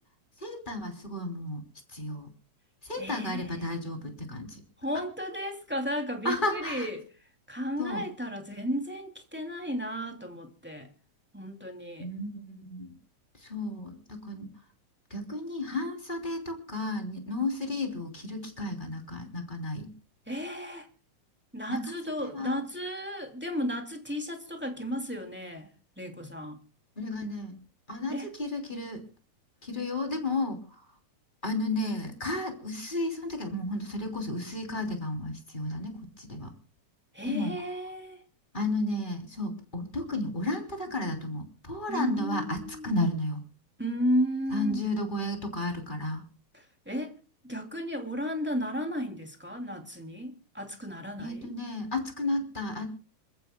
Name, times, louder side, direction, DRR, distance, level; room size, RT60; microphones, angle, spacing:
voice 1, 0.4-1.6 1.9-2.3 2.9-4.5 6.2-6.9 7.8-8.0 12.0-12.9 13.5-14.5 15.1-19.9 21.7-22.6 27.0-27.5 27.9-29.0 29.6-30.6 31.4-35.9 36.2-36.5 37.2-37.5 38.5-43.4 44.5-46.2 51.2-52.9, left 2 dB, 15° left, 3.0 m, -33 dB
voice 2, 3.0-3.7 4.8-7.1 7.5-10.9 11.3-12.1 20.3-20.9 21.5-25.7 26.0-26.6 28.1-28.3 37.1-38.2 41.9-42.9 43.8-44.8 46.5-47.1 47.4-51.5, equal, 5° right, 2.3 m, -34 dB
27.5 x 14.5 x 2.3 m
omnidirectional pair, 3.6 m